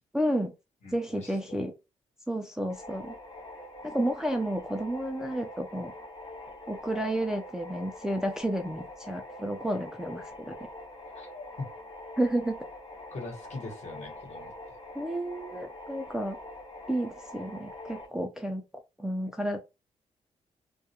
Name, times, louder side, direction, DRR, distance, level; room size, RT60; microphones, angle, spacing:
voice 1, 0.1-0.5 0.9-1.7 2.3-3.1 3.8-5.9 6.7-10.5 12.2-12.6 14.9-16.4 16.9-18.6 19.0-19.6, right 1 dB, 5° right, 0.3 m, -31 dB
voice 2, 0.8-1.6 11.1-11.7 13.1-14.8, left 3 dB, 60° left, 1.1 m, -42 dB
sound 1, 2.7-18.1, left 1 dB, 40° left, 0.7 m, -44 dB
2.3 x 2.1 x 2.8 m
cardioid pair, 110°, 13 cm